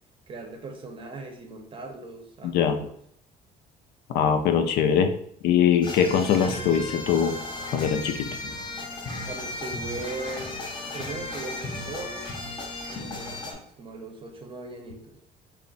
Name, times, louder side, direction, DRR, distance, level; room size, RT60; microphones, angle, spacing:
voice 1, 0.3-2.9 9.3-10.6 10.9-12.3 12.9-15.2, right 3 dB, 30° right, 3 dB, 0.6 m, -39 dB
voice 2, 2.4-2.9 4.1-5.1 5.4-7.4 7.7-8.3, left 8 dB, 75° left, 8 dB, 0.4 m, -22 dB
sound 1, 5.8-13.5, left 2 dB, 25° left, 0.6 m, -35 dB
2.4 x 2.1 x 3.8 m, 0.66 s
cardioid pair, 110°, 17 cm